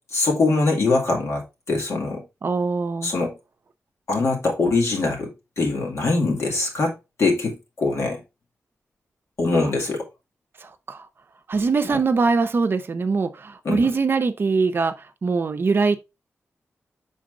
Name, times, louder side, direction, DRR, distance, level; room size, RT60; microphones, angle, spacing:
voice 1, 0.1-2.2 3.0-3.4 4.1-8.2 9.4-10.0 11.9-12.0 13.6-13.9, left 3 dB, 65° left, 2.1 m, -23 dB
voice 2, 2.4-3.1 9.5-9.7 10.6-11.1 11.5-16.0, right 4 dB, 45° right, 0.6 m, -22 dB
6.4 x 4.0 x 3.7 m
wide cardioid pair, 175°, 5 cm